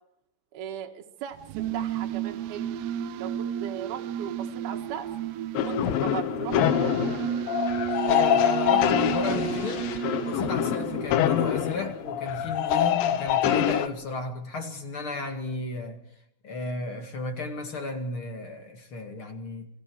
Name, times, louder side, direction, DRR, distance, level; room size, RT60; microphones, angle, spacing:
voice 1, 0.5-2.7 3.2-5.1 5.7-7.0, right 10 dB, 70° right, 2 dB, 3.5 m, -38 dB
sound 1, 1.3-11.8, right 9 dB, 85° right, 3.2 m, -32 dB
sound 2, 5.5-13.9, left 11 dB, 70° left, 2.4 m, -25 dB
voice 2, 8.0-9.8 10.2-16.0 16.4-19.7, left 3 dB, 40° left, 5 dB, 2.2 m, -34 dB
28.5 x 19.5 x 4.7 m, 0.76 s
omnidirectional pair, 4.7 m